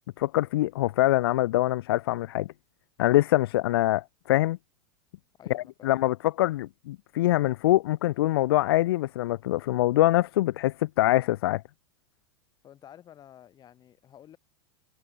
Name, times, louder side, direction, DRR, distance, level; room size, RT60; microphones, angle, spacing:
voice 1, 0.2-2.5 3.0-4.6 5.5-11.6, left 16 dB, 80° left, 0.5 m, -24 dB
voice 2, 5.4-6.1 12.6-14.4, left 10 dB, 35° left, 3.2 m, -51 dB
supercardioid pair, 120°, 12 cm